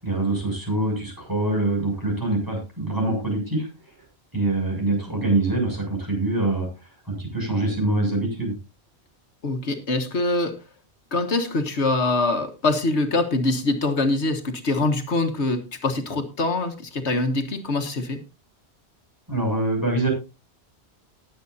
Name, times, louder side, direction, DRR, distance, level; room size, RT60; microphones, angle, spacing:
voice 1, 0.0-3.7 4.3-6.7 7.1-8.5 19.3-20.1, right 2 dB, 20° right, -1 dB, 7.2 m, -24 dB
voice 2, 9.4-10.5 11.1-18.2, left 2 dB, 80° left, 7 dB, 1.7 m, -24 dB
19.5 x 8.3 x 2.7 m, 0.27 s
omnidirectional pair, 1.1 m